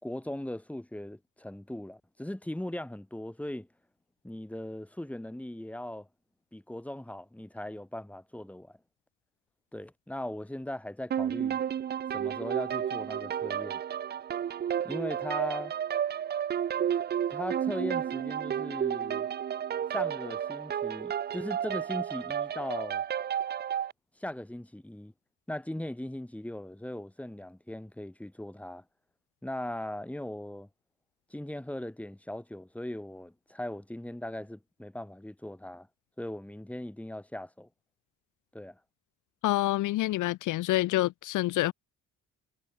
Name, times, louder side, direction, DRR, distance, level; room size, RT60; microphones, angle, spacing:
voice 1, 0.0-3.7 4.2-6.1 6.5-8.8 9.7-11.6 12.1-13.8 14.8-15.7 17.3-19.3 19.9-23.0 24.2-25.1 25.5-28.8 29.4-30.7 31.3-35.9 36.2-37.7 38.5-38.8, left 1 dB, 5° left, 2.1 m, -39 dB
sound 1, 11.1-23.9, right 9 dB, 35° right, 0.4 m, -32 dB
voice 2, 39.4-41.7, left 17 dB, 80° left, 0.8 m, -27 dB
cardioid pair, 90°, 30 cm